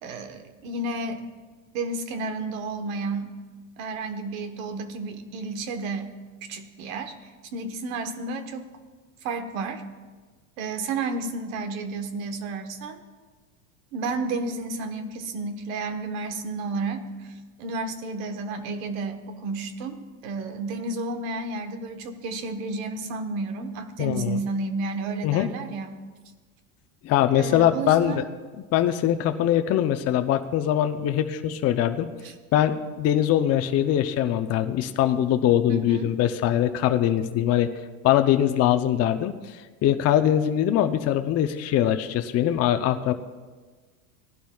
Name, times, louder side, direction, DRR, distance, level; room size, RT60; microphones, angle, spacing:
voice 1, 0.0-1.2 1.7-3.3 3.8-6.1 6.5-7.1 7.5-8.7 9.2-9.8 10.6-13.0 13.9-26.0 27.3-28.2 32.2-32.3 35.7-36.1, right 3 dB, 75° right, 8 dB, 1.4 m, -31 dB
voice 2, 24.0-24.4 25.2-25.5 27.0-28.2 28.7-32.1 32.5-37.7 38.0-39.3 39.8-43.1, left 11 dB, 35° left, 7 dB, 0.6 m, -22 dB
18.0 x 11.5 x 2.3 m, 1.4 s
supercardioid pair, 110°, 41 cm